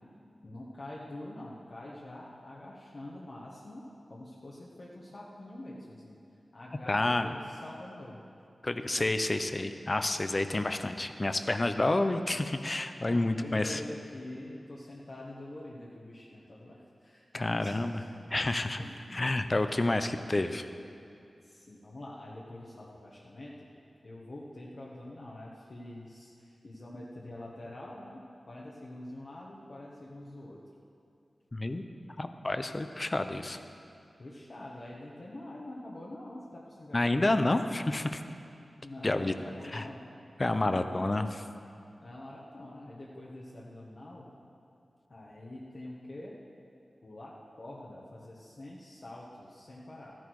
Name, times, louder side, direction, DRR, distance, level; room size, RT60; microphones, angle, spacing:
voice 1, 0.4-6.2 6.5-8.2 13.0-18.1 18.8-19.3 21.4-23.7 24.0-30.6 34.2-37.5 38.8-40.0 40.5-41.1 42.0-44.3 45.1-46.3 47.0-47.3 47.6-50.2, left 1 dB, 55° left, -6 dB, 1.3 m, -45 dB
voice 2, 6.9-7.3 8.6-13.8 17.3-18.0 18.3-18.8 19.1-20.7 31.5-31.8 32.2-33.6 36.9-38.2 39.0-39.3 39.7-39.8 40.4-41.4, left 2 dB, 35° left, 9 dB, 0.6 m, -29 dB
13.5 x 10.5 x 4.7 m, 2.5 s
wide cardioid pair, 70°, 0 cm